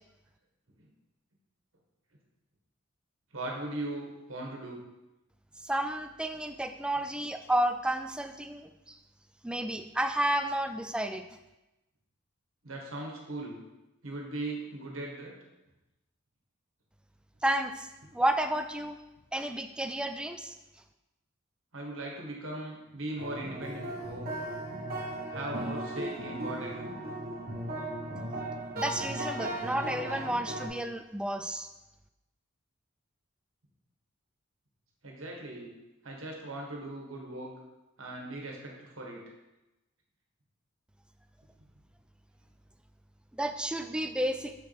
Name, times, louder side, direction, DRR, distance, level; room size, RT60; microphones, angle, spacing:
voice 1, 3.3-4.8 12.6-13.5 14.0-15.3 21.7-24.2 25.3-26.9 35.0-35.7 36.0-37.5 38.0-39.2, right 2 dB, 70° right, -1 dB, 1.5 m, -39 dB
voice 2, 5.6-9.0 9.4-11.2 17.4-19.0 19.3-20.6 28.7-31.7 43.3-44.5, right 1 dB, 5° right, 8 dB, 0.3 m, -31 dB
sound 1, 23.2-30.7, right 1 dB, 45° right, 1.3 m, -37 dB
6.5 x 6.4 x 3.4 m, 1.0 s
head